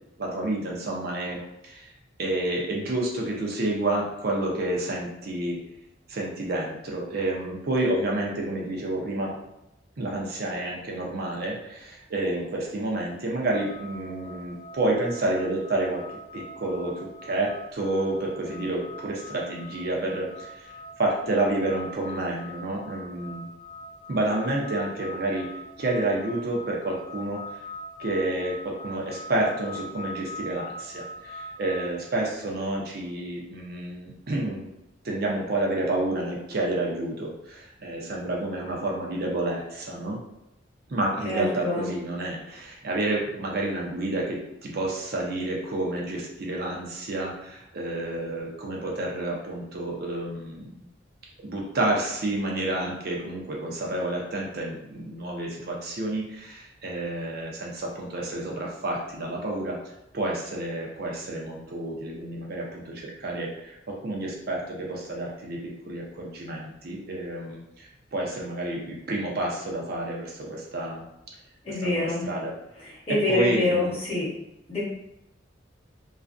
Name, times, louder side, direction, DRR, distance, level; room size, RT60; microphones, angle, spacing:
voice 1, 0.2-1.9 2.2-5.6 6.1-9.3 10.0-16.0 16.3-23.4 24.1-25.5 25.8-27.4 28.0-34.7 35.0-40.2 40.9-50.9 51.4-59.8 60.1-71.0 71.7-72.5 73.3-74.0, right 2 dB, 55° right, -2 dB, 0.5 m, -29 dB
sound 1, 13.5-31.9, left 1 dB, 50° left, 0.5 m, -43 dB
voice 2, 41.2-41.9 71.6-72.3 73.1-74.3 74.7-74.8, left 2 dB, 30° left, -7 dB, 0.9 m, -26 dB
2.4 x 2.1 x 2.4 m, 0.86 s
head